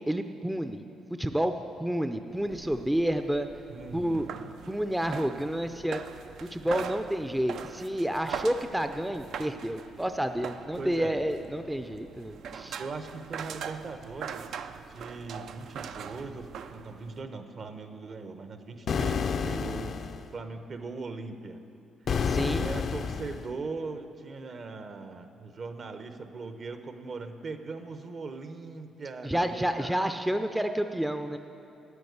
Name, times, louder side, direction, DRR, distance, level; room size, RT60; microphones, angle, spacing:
voice 1, 0.1-0.8 1.2-1.5 1.8-3.5 3.9-4.3 4.7-6.0 6.4-12.8 22.2-22.7 29.2-31.4, equal, 5° right, 8 dB, 0.5 m, -29 dB
sound 1, 2.3-17.2, right 7 dB, 70° right, 0.5 m, -42 dB
voice 2, 3.7-4.3 8.2-8.5 10.8-11.2 12.8-20.0 20.3-21.6 22.5-30.3, right 4 dB, 50° right, 8 dB, 0.9 m, -40 dB
sound 2, 18.9-20.3 22.1-23.5, left 6 dB, 55° left, 0.5 m, -29 dB
9.6 x 9.3 x 8.1 m, 2.7 s
cardioid pair, 90°, 0 cm